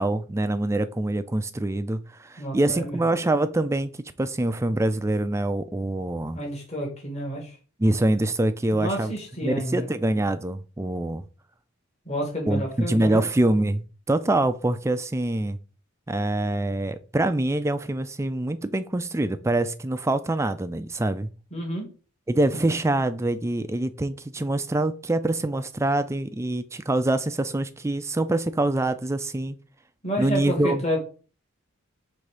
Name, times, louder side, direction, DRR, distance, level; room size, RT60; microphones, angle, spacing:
voice 1, 0.0-6.4 7.8-9.1 9.4-11.2 12.5-15.6 16.1-21.3 22.3-29.5 30.2-31.0, right 1 dB, 15° right, 0.4 m, -25 dB
voice 2, 2.4-3.0 6.3-7.6 8.7-9.9 12.0-13.2 21.5-21.9 22.5-22.6 30.0-31.0, equal, 35° left, 1.8 m, -30 dB
5.5 x 3.5 x 4.9 m
head